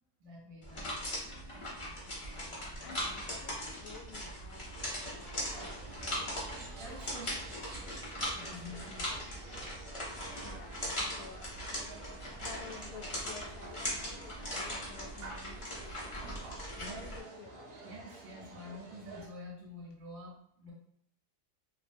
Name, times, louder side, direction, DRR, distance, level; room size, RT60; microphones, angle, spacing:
voice 1, 0.2-1.5 6.8-7.4 8.3-9.2 16.8-17.1 17.8-20.7, left 1 dB, 80° right, -3 dB, 1.2 m, -48 dB
sound 1, 0.6-17.2, equal, 45° left, 0.4 m, -40 dB
voice 2, 2.4-4.8 5.1-6.0 10.4-11.8 12.4-16.7 16.9-17.8, left 5 dB, 75° left, 2 dB, 1.1 m, -52 dB
sound 2, 5.2-19.3, right 3 dB, 65° right, 0.6 m, -50 dB
2.9 x 2.3 x 2.5 m, 0.71 s
omnidirectional pair, 1.7 m